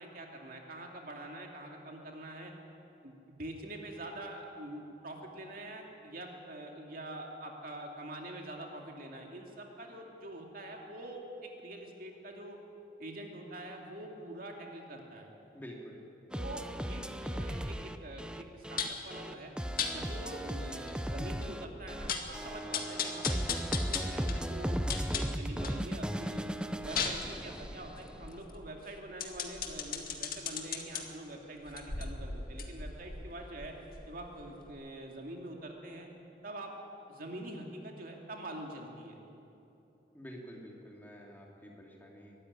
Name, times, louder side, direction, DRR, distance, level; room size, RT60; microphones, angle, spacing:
voice 1, 0.0-2.5 3.0-12.6 13.0-15.3 16.4-19.5 19.9-26.4 26.8-33.8 34.1-36.1 36.4-36.7 37.1-39.2, right 1 dB, 55° right, 1 dB, 2.5 m, -45 dB
voice 2, 15.5-16.0 40.1-42.3, equal, 10° left, -1 dB, 3.0 m, -48 dB
sound 1, 16.3-28.3, equal, 5° right, 0.7 m, -36 dB
sound 2, 18.8-19.1 19.8-19.9 20.5-20.6 20.9-21.0 21.4-21.5 21.8-22.3 22.7-25.8 26.2-31.0 31.6-34.3 34.6-34.7, left 6 dB, 55° left, 1.9 m, -37 dB
23.5 x 13.0 x 9.9 m, 2.9 s
head